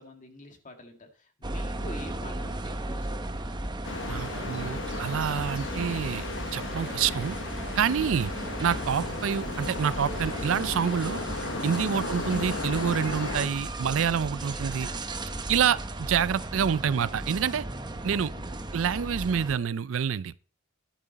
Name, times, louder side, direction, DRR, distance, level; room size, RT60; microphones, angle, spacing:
voice 1, 0.0-3.5 18.3-18.7, left 1 dB, 40° left, 1.9 m, -47 dB
sound 1, 1.4-19.6, right 2 dB, 20° right, 0.9 m, -36 dB
sound 2, 3.8-13.5, left 3 dB, 65° left, 1.1 m, -35 dB
sound 3, 3.9-15.7, right 2 dB, 5° right, 3.0 m, -55 dB
voice 2, 4.0-6.3 6.5-7.4 7.8-8.3 8.6-11.2 11.6-14.9 15.5-17.7 18.0-18.3 18.7-20.3, right 7 dB, 75° right, 0.4 m, -27 dB
11.0 x 8.6 x 4.0 m
head